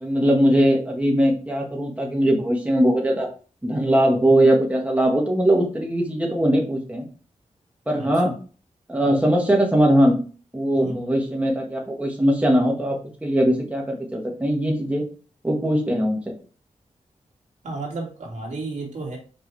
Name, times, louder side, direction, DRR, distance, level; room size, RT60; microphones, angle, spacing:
voice 1, 0.0-3.3 3.6-7.1 7.9-8.3 8.9-10.2 10.5-15.1 15.4-16.2, right 1 dB, 10° right, 0 dB, 1.5 m, -20 dB
voice 2, 8.0-8.3 10.7-11.2 17.6-19.2, right 2 dB, 70° right, -2 dB, 2.5 m, -32 dB
5.8 x 4.8 x 3.4 m, 0.37 s
wide cardioid pair, 170°, 13 cm